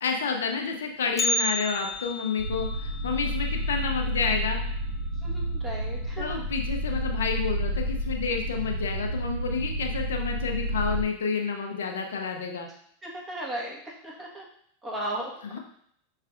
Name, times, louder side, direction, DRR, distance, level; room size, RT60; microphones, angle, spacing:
voice 1, 0.0-4.6 6.2-12.7 15.5-15.6, left 5 dB, 80° left, 3 dB, 0.6 m, -29 dB
Bell, 1.2-5.3 5.5-5.6 6.1-6.2 7.0-7.1 7.9-8.2 8.5-8.6, left 1 dB, 25° left, 0.7 m, -33 dB
sound 1, 2.4-11.0, equal, 70° right, 1.5 m, -30 dB
voice 2, 5.1-6.4 13.0-14.5 14.8-15.6, right 1 dB, 15° right, -3 dB, 1.5 m, -36 dB
5.7 x 3.2 x 2.5 m, 0.66 s
hypercardioid pair, 100°, 0 cm